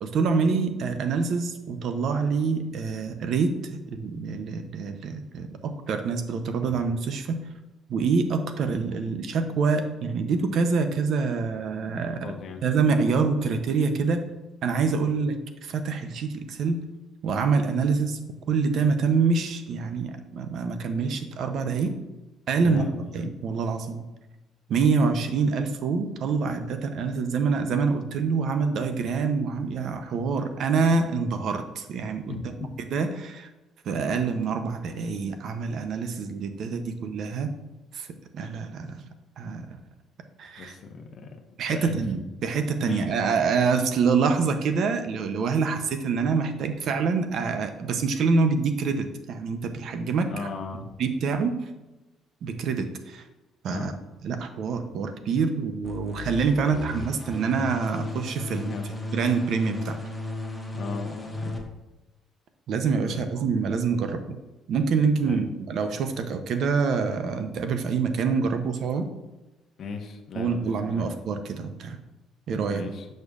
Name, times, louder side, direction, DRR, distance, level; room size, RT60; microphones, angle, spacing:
voice 1, 0.0-3.5 3.9-7.4 7.9-12.2 12.6-14.2 14.6-15.3 15.6-16.8 17.2-18.2 18.5-21.9 22.5-22.8 23.1-24.0 24.7-32.4 32.9-33.5 33.9-37.5 37.9-38.1 38.3-39.0 39.4-39.8 40.4-40.7 41.6-50.3 51.0-51.6 52.4-53.2 53.6-53.9 54.2-58.7 59.1-60.0 62.7-64.4 64.7-69.1 70.3-72.0 72.5-72.8, right 5 dB, 60° right, 8 dB, 0.6 m, -26 dB
voice 2, 12.2-12.6 15.0-15.2 22.6-23.1 32.3-32.7 40.6-42.0 42.8-43.3 50.3-50.9 53.7-53.9 58.7-59.0 60.7-61.7 62.7-63.3 65.2-65.4 69.8-71.0 72.7-73.1, left 4 dB, 50° left, 3 dB, 0.8 m, -37 dB
sound 1, 55.8-61.6, left 2 dB, 5° left, 1.0 m, -35 dB
6.5 x 6.4 x 2.4 m, 1.0 s
cardioid pair, 120°, 0 cm